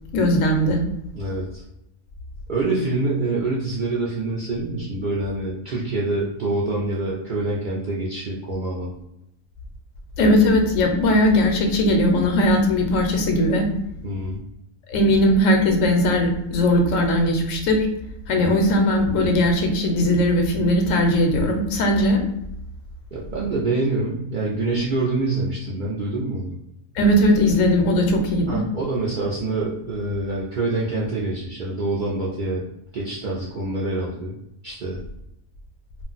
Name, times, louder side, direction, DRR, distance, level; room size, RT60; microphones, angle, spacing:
voice 1, 0.1-0.8 10.2-13.7 14.9-17.9 18.3-22.2 27.0-28.6, left 1 dB, 80° left, 3 dB, 1.0 m, -19 dB
voice 2, 1.1-1.6 2.5-8.9 14.0-14.4 23.1-26.6 27.9-28.0 28.5-32.6 32.9-34.3 34.6-35.0, right 2 dB, 65° right, -5 dB, 0.5 m, -26 dB
2.4 x 2.1 x 3.8 m, 0.83 s
omnidirectional pair, 1.4 m